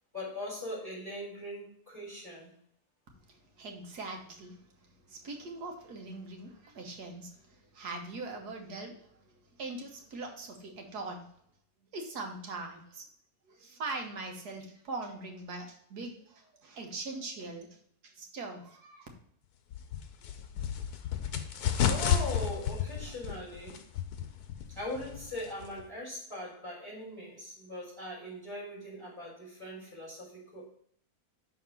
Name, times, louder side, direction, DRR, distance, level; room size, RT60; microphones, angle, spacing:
voice 1, 0.1-2.5 21.9-23.7 24.7-30.7, left 1 dB, 15° right, -5 dB, 3.4 m, -40 dB
voice 2, 3.6-4.6 5.1-7.4 7.7-9.0 9.6-11.2 11.9-13.0 13.5-17.7 18.0-19.1, right 3 dB, 90° right, 2 dB, 1.8 m, -41 dB
sound 1, 19.7-25.9, left 9 dB, 90° left, 1.3 m, -32 dB
6.2 x 4.3 x 5.8 m, 0.65 s
omnidirectional pair, 1.6 m